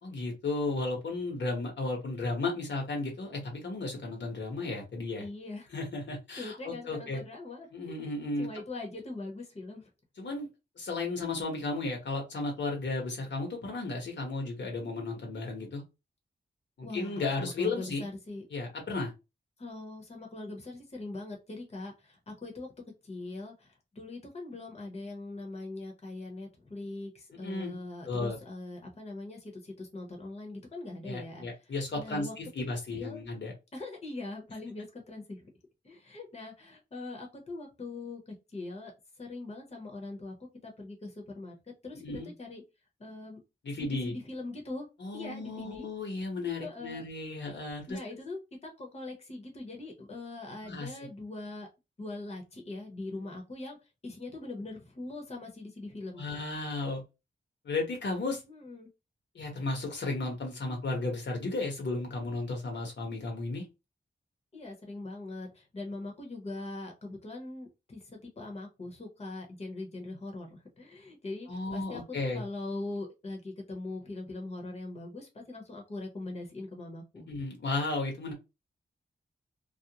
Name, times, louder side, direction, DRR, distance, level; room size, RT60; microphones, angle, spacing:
voice 1, 0.0-5.2 5.7-7.2 7.7-8.5 10.2-10.5 10.8-15.8 16.8-18.0 18.5-19.1 27.4-27.7 28.0-28.4 31.0-33.5 42.0-42.3 43.6-44.1 45.0-48.0 50.6-50.9 56.2-57.0 57.6-58.4 59.3-63.6 71.5-72.4 77.3-78.3, left 3 dB, 75° left, 1.0 m, -34 dB
voice 2, 5.2-5.7 6.4-8.1 8.4-9.9 16.8-18.4 19.6-22.7 23.0-32.3 32.9-33.2 33.7-35.5 35.8-38.9 39.2-40.3 40.6-42.6 43.0-43.4 43.8-44.9 45.1-45.9 46.6-47.0 47.4-47.6 47.9-51.7 52.0-53.8 54.0-56.2 58.5-58.9 64.5-77.3, left 2 dB, 35° left, 0.8 m, -41 dB
2.4 x 2.0 x 2.8 m
wide cardioid pair, 125°, 19 cm